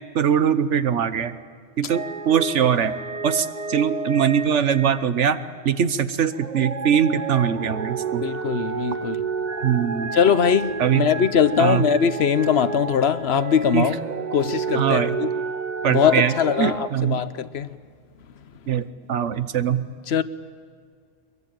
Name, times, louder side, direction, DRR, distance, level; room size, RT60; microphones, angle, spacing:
voice 1, 0.1-1.3 1.8-2.9 3.2-5.4 5.6-8.2 9.6-10.1 10.8-11.1 11.6-11.9 13.7-13.9 14.7-15.2 15.8-16.3 16.6-17.3 18.7-19.9, right 8 dB, 80° right, 1.3 m, -22 dB
sound 1, 1.9-5.6 6.3-16.9, right 4 dB, 40° right, 1.0 m, -31 dB
voice 2, 8.2-9.3 10.1-14.0 14.3-15.3 15.9-17.8 20.1-20.2, left 7 dB, 65° left, 1.0 m, -21 dB
23.0 x 22.0 x 9.0 m
omnidirectional pair, 1.2 m